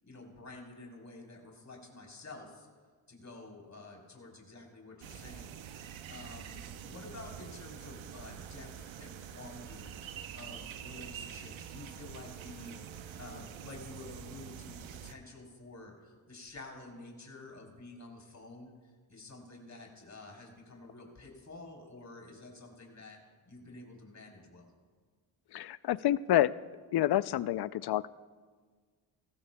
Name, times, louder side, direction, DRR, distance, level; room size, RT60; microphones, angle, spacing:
voice 1, 0.0-2.7 3.1-12.9 13.2-23.2 23.5-24.7, left 2 dB, 35° left, -1 dB, 3.7 m, -50 dB
sound 1, 5.0-15.1, right 8 dB, 75° right, 0.8 m, -46 dB
voice 2, 25.5-26.6 26.9-28.1, left 13 dB, 55° left, 17 dB, 0.5 m, -28 dB
19.5 x 15.0 x 2.2 m, 1.5 s
cardioid pair, 60°, 47 cm